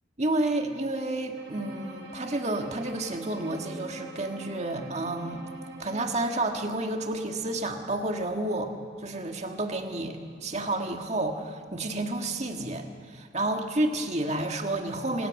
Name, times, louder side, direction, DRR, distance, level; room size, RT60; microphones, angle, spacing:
voice 1, 0.2-5.4 5.8-8.7 9.0-15.3, right 2 dB, 35° right, 4 dB, 1.7 m, -30 dB
Bowed string instrument, 1.3-6.8, right 1 dB, 85° right, 4.3 m, -43 dB
26.0 x 17.0 x 6.6 m, 2.2 s
head